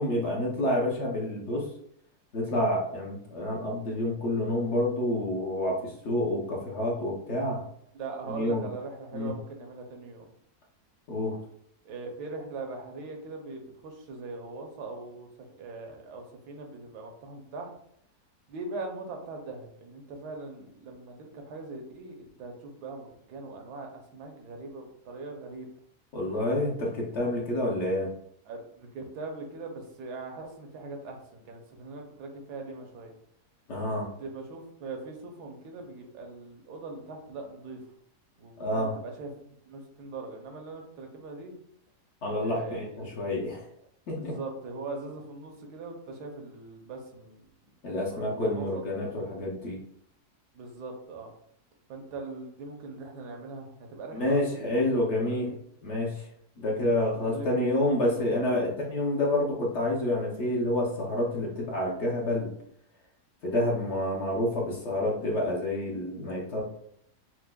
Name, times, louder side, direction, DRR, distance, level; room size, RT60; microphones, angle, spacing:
voice 1, 0.0-1.7 2.3-7.6 8.3-8.7 9.1-9.3 11.1-11.4 26.1-28.1 33.7-34.1 38.6-38.9 42.2-43.7 44.1-44.4 47.8-49.8 54.1-55.5 55.8-56.3 56.6-62.5 63.4-66.6, left 1 dB, 55° left, -2 dB, 0.9 m, -28 dB
voice 2, 7.9-10.3 11.8-15.3 15.6-17.7 18.5-25.7 28.5-33.1 33.9-34.0 34.2-37.8 38.4-39.3 39.7-41.5 42.3-43.1 44.1-47.5 48.1-48.8 50.5-51.3 51.9-55.5 57.2-58.6 63.6-63.8, right 3 dB, 85° right, 3 dB, 1.3 m, -41 dB
5.8 x 2.0 x 2.2 m, 0.70 s
omnidirectional pair, 1.7 m